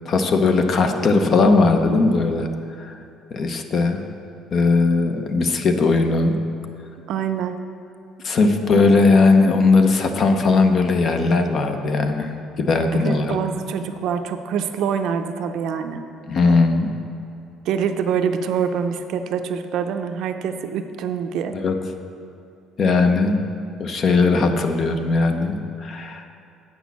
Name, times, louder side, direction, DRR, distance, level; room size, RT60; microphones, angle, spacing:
voice 1, 0.1-2.5 2.8-2.9 3.3-4.1 4.5-6.4 8.2-13.4 16.2-16.9 21.5-21.7 22.8-23.4 23.8-26.3, left 3 dB, 40° left, 6 dB, 0.7 m, -18 dB
voice 2, 7.1-7.6 8.5-8.7 12.9-16.0 17.7-21.6, right 7 dB, 60° right, 7 dB, 0.5 m, -25 dB
8.3 x 6.2 x 7.1 m, 2.6 s
cardioid pair, 155°, 0 cm